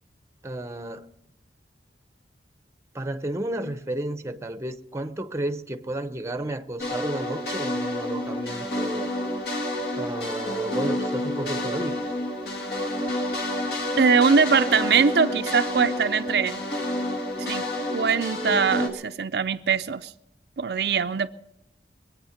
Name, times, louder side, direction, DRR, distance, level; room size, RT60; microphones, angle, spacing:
voice 1, 0.4-1.1 2.9-9.1 10.0-12.0, right 1 dB, 15° right, 0.7 m, -32 dB
sound 1, 6.8-18.9, left 1 dB, 65° left, 2.5 m, -29 dB
voice 2, 14.0-16.6 17.4-17.6 17.9-20.1 20.6-21.3, right 6 dB, 65° right, 0.5 m, -22 dB
23.5 x 8.9 x 5.8 m
head